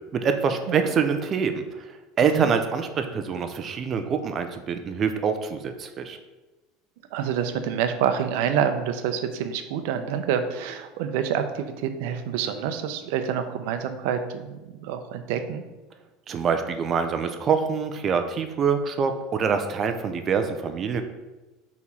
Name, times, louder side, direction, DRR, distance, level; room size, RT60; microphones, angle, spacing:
voice 1, 0.1-1.6 2.2-6.2 16.3-21.0, right 6 dB, 30° right, 7 dB, 0.5 m, -25 dB
voice 2, 7.1-15.6, right 8 dB, 70° right, 8 dB, 0.7 m, -27 dB
4.7 x 4.2 x 5.5 m, 1.1 s
supercardioid pair, 155°, 0 cm